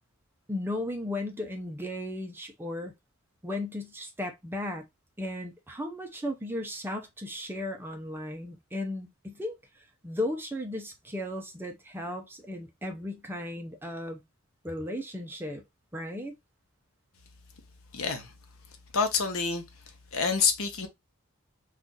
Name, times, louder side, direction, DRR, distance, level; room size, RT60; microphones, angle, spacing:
voice 1, 0.5-2.9 3.4-4.8 5.2-9.6 10.0-14.2 14.6-15.6 15.9-16.3, left 1 dB, 10° right, 0.5 m, -35 dB
voice 2, 17.9-18.3 18.9-19.6 20.1-20.9, left 5 dB, 70° left, 0.8 m, -27 dB
2.4 x 2.4 x 3.8 m
head